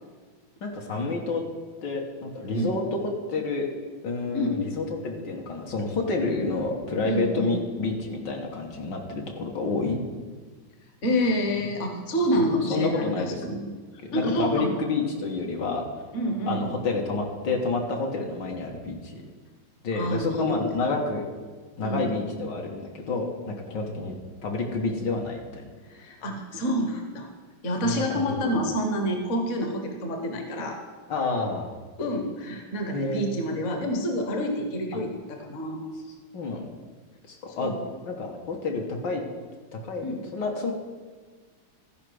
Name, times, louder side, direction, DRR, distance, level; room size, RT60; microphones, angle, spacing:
voice 1, 0.6-1.4 1.8-2.8 3.3-3.7 4.0-10.0 12.3-13.4 14.1-15.9 16.5-19.2 19.8-21.2 21.8-25.7 27.8-28.4 31.1-31.7 32.9-33.4 36.3-36.7 37.3-37.7 38.1-39.2 39.7-40.7, left 3 dB, 65° left, 1 dB, 1.8 m, -29 dB
voice 2, 7.0-7.5 11.0-13.7 14.1-14.8 16.1-16.7 19.9-20.7 21.8-22.2 25.8-27.3 27.6-30.8 32.0-35.9 37.5-37.8 40.0-40.2, equal, 45° left, 3 dB, 1.4 m, -28 dB
14.0 x 5.1 x 6.2 m, 1.4 s
omnidirectional pair, 2.1 m